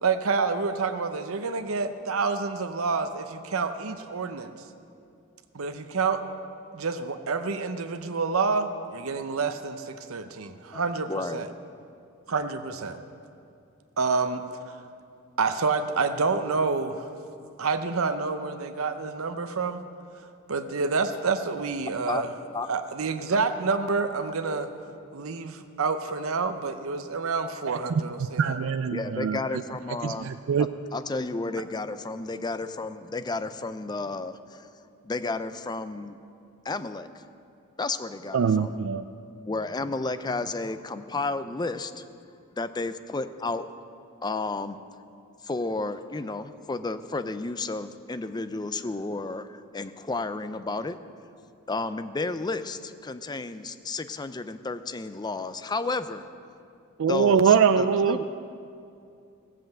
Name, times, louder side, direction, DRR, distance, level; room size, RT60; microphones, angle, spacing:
voice 1, 0.0-4.5 5.5-6.2 6.7-11.5 12.3-13.0 14.0-14.8 15.4-17.1 17.6-19.8 20.5-22.3 22.7-24.7 25.1-28.6, right 4 dB, 90° right, 8 dB, 0.7 m, -28 dB
voice 2, 11.1-11.4 22.1-22.2 22.5-22.7 28.9-30.3 30.6-34.7 35.0-36.2 36.6-37.2 37.8-38.7 39.5-42.1 42.6-43.7 44.2-44.8 45.4-51.0 51.7-56.3 57.1-58.2, left 3 dB, 20° left, 12 dB, 0.5 m, -32 dB
voice 3, 27.6-28.0 28.4-29.4 30.0-30.7 38.3-39.0 57.0-58.2, right 6 dB, 65° right, 10 dB, 0.4 m, -23 dB
16.5 x 7.6 x 7.7 m, 2.5 s
head